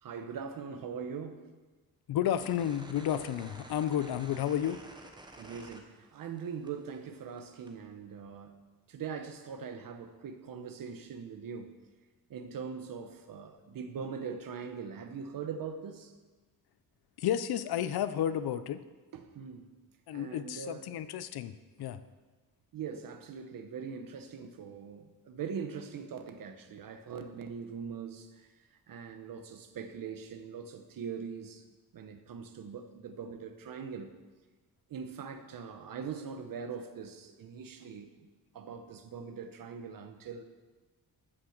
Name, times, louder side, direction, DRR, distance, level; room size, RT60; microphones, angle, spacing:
voice 1, 0.0-1.4 5.3-8.5 8.9-11.7 12.3-16.1 19.1-19.7 20.1-20.9 22.7-28.3 28.9-31.6 31.9-34.1 34.9-38.1 38.5-40.4, right 6 dB, 60° right, 8 dB, 1.1 m, -41 dB
voice 2, 2.1-4.8 17.2-18.8 20.1-21.5 21.8-22.0, left 10 dB, 80° left, 13 dB, 0.7 m, -31 dB
sound 1, 2.3-6.4 6.7-7.7, right 2 dB, 10° right, 0.9 m, -50 dB
13.5 x 6.2 x 6.6 m, 1.3 s
wide cardioid pair, 175°, 37 cm